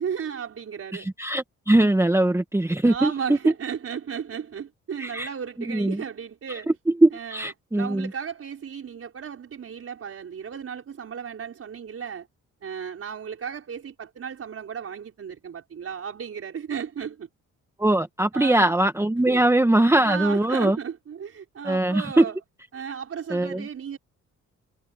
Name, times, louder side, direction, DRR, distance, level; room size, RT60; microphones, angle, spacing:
voice 1, 0.0-1.1 2.8-6.7 7.1-12.3 12.6-17.3 18.3-18.7 19.3-19.4 20.0-22.4 22.7-24.0, right 7 dB, 50° right, 5.2 m, -34 dB
voice 2, 0.9-3.4 5.0-5.3 5.7-6.0 6.5-6.6 7.0-8.1 17.8-20.8 21.6-22.2 23.3-23.6, right 1 dB, 10° right, 1.4 m, -21 dB
cardioid pair, 90°, 30 cm